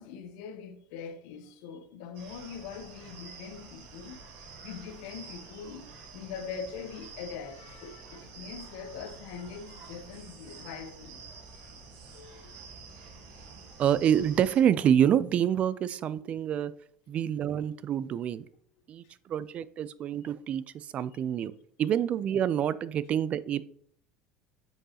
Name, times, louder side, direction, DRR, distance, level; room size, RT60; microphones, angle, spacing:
voice 1, 0.0-4.2 4.6-11.2 12.1-12.5 19.0-19.1 21.1-21.2, left 6 dB, 75° left, 0.8 m, -42 dB
sound 1, 2.1-14.6, right 4 dB, 70° right, 1.5 m, -48 dB
voice 2, 13.8-16.7 17.1-18.5 18.9-21.5 21.8-23.7, right 9 dB, 40° right, 0.3 m, -27 dB
7.8 x 4.6 x 2.9 m
supercardioid pair, 110°, 3 cm